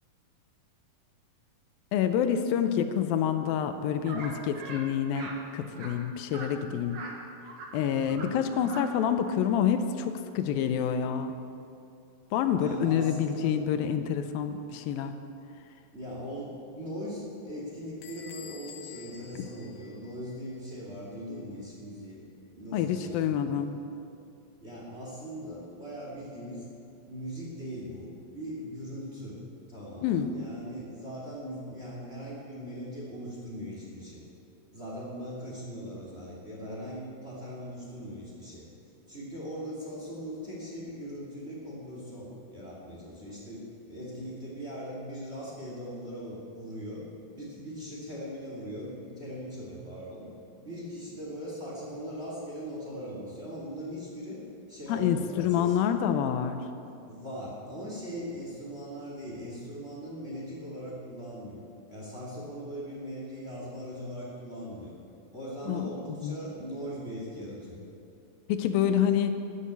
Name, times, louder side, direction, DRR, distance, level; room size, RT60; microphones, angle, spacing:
voice 1, 1.9-7.0 7.7-11.4 12.3-15.1 22.7-23.7 30.0-30.3 54.9-56.7 65.7-65.9 66.2-66.3 68.5-69.4, left 8 dB, 85° left, 8 dB, 2.4 m, -27 dB
sound 1, 4.1-4.3 4.6-4.8 5.1-5.4 5.7-5.9 6.3-6.5 6.9-7.1 7.4-7.7 8.0-8.3 8.5-8.8, right 3 dB, 55° right, 2.4 m, -41 dB
voice 2, 7.9-8.2 12.6-13.6 15.9-22.2 22.5-23.7 24.6-26.7 27.1-29.4 29.7-34.2 34.7-38.7 39.1-47.1 47.3-50.3 50.6-54.4 54.7-55.8 57.0-61.6 61.9-65.0 65.3-67.8, equal, 20° right, -5 dB, 2.4 m, -40 dB
Bell / Squeak, 18.0-20.5, left 8 dB, 65° left, 2.0 m, -49 dB
13.0 x 8.5 x 8.3 m, 2.6 s
omnidirectional pair, 4.2 m